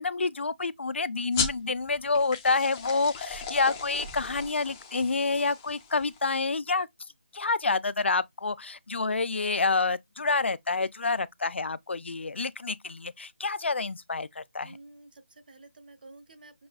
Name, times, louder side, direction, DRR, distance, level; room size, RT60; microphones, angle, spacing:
voice 1, 0.0-6.9 7.3-14.8, left 4 dB, 90° left, 0.4 m, -28 dB
sound 1, 1.3-6.4, left 5 dB, 10° left, 0.5 m, -37 dB
voice 2, 14.6-16.7, right 2 dB, 55° right, 0.9 m, -51 dB
6.0 x 2.3 x 2.3 m
figure-of-eight pair, 170°, 6 cm